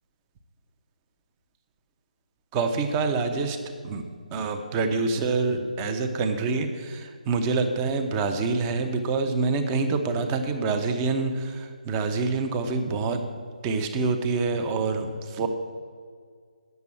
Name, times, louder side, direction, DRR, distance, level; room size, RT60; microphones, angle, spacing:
voice 1, 2.5-3.6 3.8-4.0 4.3-13.2 13.6-15.5, right 4 dB, 20° right, 6 dB, 0.9 m, -26 dB
9.4 x 6.8 x 8.6 m, 2.1 s
figure-of-eight pair, 145°, 4 cm